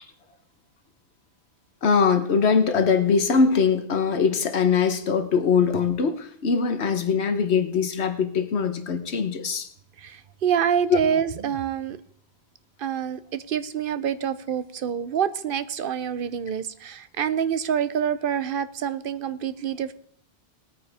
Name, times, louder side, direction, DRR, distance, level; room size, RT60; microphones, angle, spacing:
voice 1, 1.8-9.7 10.9-11.0, left 5 dB, 85° left, 9 dB, 1.3 m, -22 dB
voice 2, 10.0-12.0 12.8-19.9, right 8 dB, 60° right, 14 dB, 0.8 m, -26 dB
19.5 x 9.2 x 3.5 m, 0.62 s
omnidirectional pair, 1.1 m